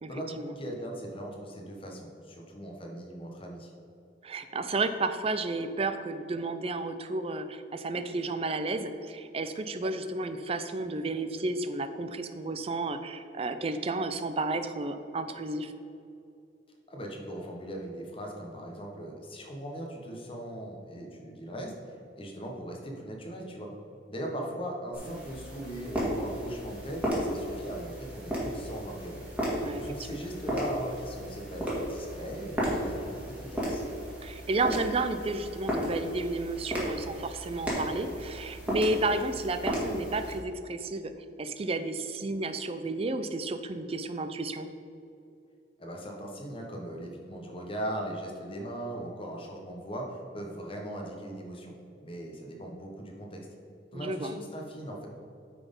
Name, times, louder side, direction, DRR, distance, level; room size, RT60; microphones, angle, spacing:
voice 1, 0.1-3.7 16.9-21.7 22.2-23.7 24.1-29.2 29.8-33.8 45.8-51.7 52.0-53.4 53.9-55.1, right 1 dB, 30° left, 0 dB, 1.1 m, -39 dB
voice 2, 4.2-15.7 25.0-25.2 29.6-29.8 30.1-30.2 34.2-41.1 41.4-44.7 53.9-54.4, right 2 dB, 30° right, 9 dB, 0.4 m, -32 dB
sound 1, 24.9-40.4, equal, 5° right, 1.8 m, -34 dB
9.0 x 4.2 x 5.3 m, 2.7 s
head